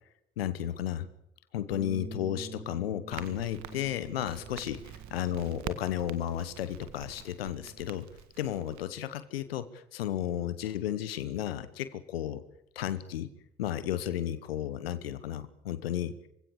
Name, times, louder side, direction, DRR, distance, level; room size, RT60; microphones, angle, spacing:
voice 1, 0.4-1.1 1.5-4.8 5.1-8.1 8.4-12.4 12.7-13.3 13.6-16.2, left 11 dB, 90° left, 13 dB, 1.0 m, -33 dB
Bass guitar, 1.7-8.0, right 3 dB, 25° right, 1.6 m, -48 dB
Crackle, 3.1-8.8, right 10 dB, 70° right, 1.8 m, -46 dB
25.5 x 16.5 x 8.4 m, 0.78 s
hypercardioid pair, 40°, 29 cm